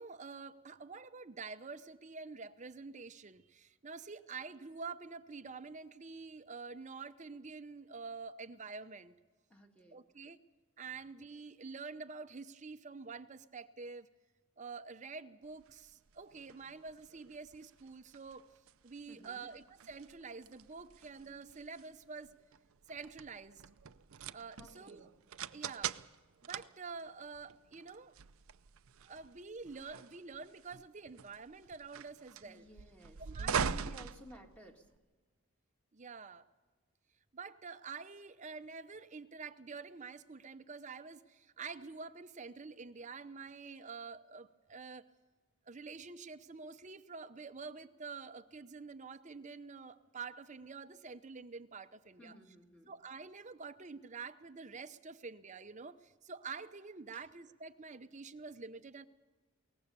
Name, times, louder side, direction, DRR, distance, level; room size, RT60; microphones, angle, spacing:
voice 1, 0.0-9.1 9.9-10.4 10.8-14.1 14.6-18.5 18.8-22.3 22.9-23.6 24.3-25.1 25.5-26.0 26.4-28.1 29.0-32.6 33.2-33.6 35.9-36.5 37.3-45.1 45.7-52.4 52.9-59.0, right 4 dB, 35° right, 11 dB, 0.7 m, -47 dB
voice 2, 9.5-10.0 19.1-19.5 24.6-25.1 32.4-34.9 52.2-52.9 57.1-57.3, left 1 dB, 5° left, 2 dB, 1.7 m, -55 dB
sound 1, 15.6-35.0, right 6 dB, 70° right, 0.6 m, -44 dB
22.0 x 19.0 x 6.8 m, 1.3 s
head